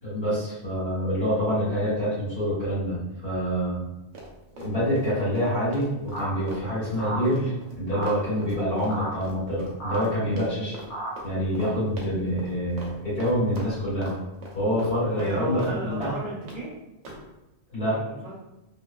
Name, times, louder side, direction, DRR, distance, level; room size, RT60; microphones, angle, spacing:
voice 1, 0.0-3.8 4.6-10.8 11.2-14.2 14.5-16.1 17.7-18.0, equal, 55° left, -9 dB, 1.6 m, -26 dB
Run, 4.1-5.1 5.3-10.1 10.4-10.9 11.2-11.3 11.5-11.7 12.0-12.5 12.8-12.9 13.2-14.2 14.4-16.6 17.0-17.2, right 2 dB, 80° right, 1.0 m, -42 dB
sound 1, 6.1-6.3 7.0-7.2 7.9-8.1 8.9-9.1 9.8-10.0 10.9-11.1, right 2 dB, 75° left, 1.0 m, -31 dB
voice 2, 15.1-16.8 17.8-18.3, right 1 dB, 40° right, -9 dB, 1.1 m, -33 dB
2.9 x 2.1 x 2.3 m, 0.95 s
omnidirectional pair, 1.2 m